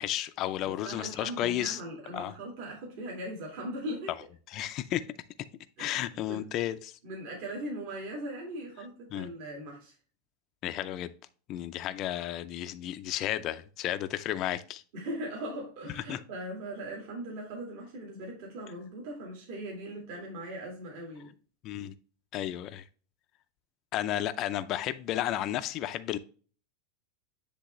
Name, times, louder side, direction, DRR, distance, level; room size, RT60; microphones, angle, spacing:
voice 1, 0.0-1.8 2.1-2.3 4.5-5.0 5.8-6.9 9.1-9.3 10.6-11.1 11.5-14.8 16.1-16.2 21.6-21.9 22.3-22.8 23.9-26.2, left 13 dB, 35° left, 0.4 m, -32 dB
voice 2, 0.6-4.1 5.8-6.4 7.0-9.9 12.3-12.4 14.9-21.3, right 1 dB, 55° right, 2.3 m, -39 dB
10.0 x 3.4 x 3.1 m
supercardioid pair, 165°, 0 cm